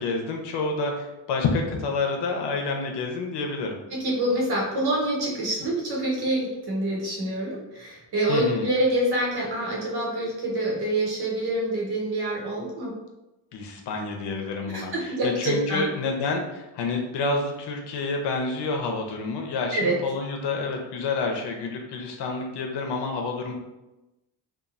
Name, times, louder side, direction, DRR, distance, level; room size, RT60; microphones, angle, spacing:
voice 1, 0.0-3.8 8.3-8.7 13.5-23.5, left 3 dB, 75° left, 2 dB, 0.7 m, -28 dB
voice 2, 3.9-13.0 14.7-15.9 19.7-20.0, right 1 dB, 65° right, -3 dB, 1.1 m, -26 dB
2.9 x 2.4 x 2.5 m, 0.99 s
cardioid pair, 100°, 41 cm